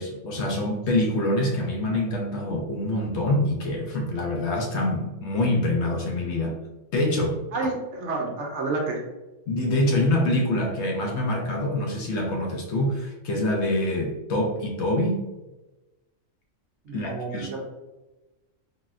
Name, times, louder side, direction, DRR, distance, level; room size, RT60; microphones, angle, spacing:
voice 1, 0.0-6.6 6.9-7.4 9.5-15.2 16.9-17.6, left 1 dB, 65° left, 0 dB, 0.7 m, -25 dB
voice 2, 7.5-9.0 16.8-17.6, right 3 dB, 65° right, 0 dB, 0.8 m, -29 dB
4.0 x 2.1 x 2.4 m, 1.1 s
omnidirectional pair, 1.4 m